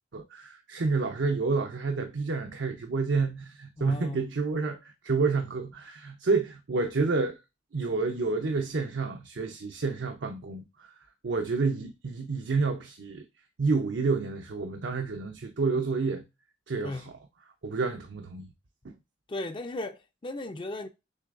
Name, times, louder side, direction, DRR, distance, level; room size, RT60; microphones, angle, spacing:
voice 1, 0.1-7.4 7.7-10.9 11.2-13.2 13.6-16.2 16.7-17.1 17.6-18.5 18.8-18.9, right 4 dB, 70° right, 0.6 m, -29 dB
voice 2, 3.8-4.3 15.8-15.9 16.8-17.1 19.3-20.9, left 2 dB, 25° left, 0.4 m, -36 dB
6.5 x 3.3 x 2.5 m
head